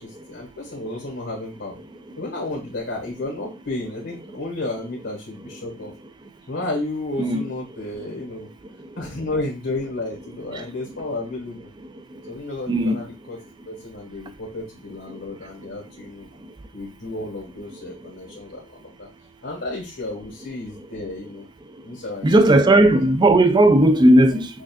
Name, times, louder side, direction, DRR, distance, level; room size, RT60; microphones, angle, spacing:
voice 1, 0.0-1.8 2.2-5.9 6.5-8.5 8.9-11.7 12.3-13.4 13.6-16.3 16.7-19.1 19.4-21.5 21.8-22.3, left 2 dB, 85° left, 1.5 m, -32 dB
voice 2, 7.2-7.5 12.7-13.0 22.2-24.5, right 1 dB, 25° right, 0.4 m, -15 dB
6.3 x 2.5 x 2.5 m
head